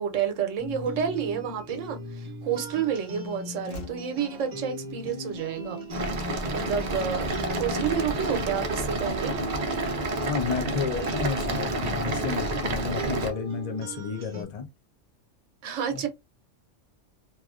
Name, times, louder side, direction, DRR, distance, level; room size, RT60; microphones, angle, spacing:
voice 1, 0.0-5.8 6.5-9.3 15.6-16.1, right 8 dB, 80° right, 1.0 m, -30 dB
sound 1, 0.6-14.4, right 1 dB, 35° right, 0.8 m, -39 dB
Train / Slam, 2.3-5.9 6.1-6.4 6.7-7.9 8.3-8.7, left 2 dB, 85° left, 1.2 m, -49 dB
sound 2, 5.9-13.3, right 1 dB, 60° right, 0.4 m, -29 dB
voice 2, 10.3-14.6 15.9-16.1, left 6 dB, 45° left, 0.5 m, -32 dB
3.0 x 2.4 x 2.4 m
omnidirectional pair, 1.3 m